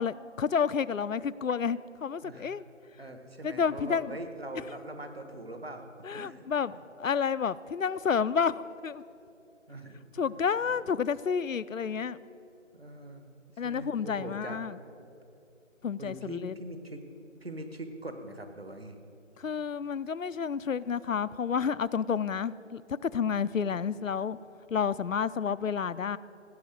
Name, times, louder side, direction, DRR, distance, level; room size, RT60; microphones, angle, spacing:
voice 1, 0.0-2.6 3.4-4.2 6.0-9.0 10.2-12.2 13.6-14.8 15.8-16.6 19.4-24.4 24.7-26.2, left 6 dB, 85° left, 17 dB, 0.5 m, -30 dB
voice 2, 2.2-2.5 3.0-6.4 9.7-10.0 10.3-10.7 12.7-13.3 13.6-14.6 16.0-17.0 17.4-19.0, right 1 dB, 50° right, 7 dB, 1.3 m, -42 dB
16.0 x 6.2 x 9.3 m, 2.7 s
figure-of-eight pair, 165°, 38 cm